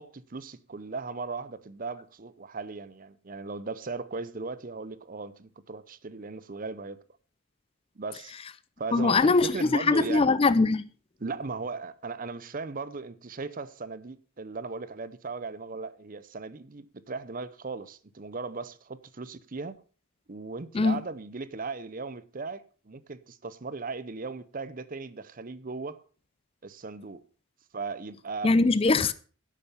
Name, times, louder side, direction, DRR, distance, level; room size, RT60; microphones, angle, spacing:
voice 1, 0.0-7.0 8.0-8.3 8.8-10.3 11.2-19.8 20.3-26.0 26.6-27.2 27.7-28.8, right 4 dB, 40° right, 0.7 m, -37 dB
voice 2, 8.9-10.8 20.7-21.0 28.4-29.1, left 3 dB, 25° left, 0.4 m, -22 dB
11.0 x 8.4 x 5.7 m
head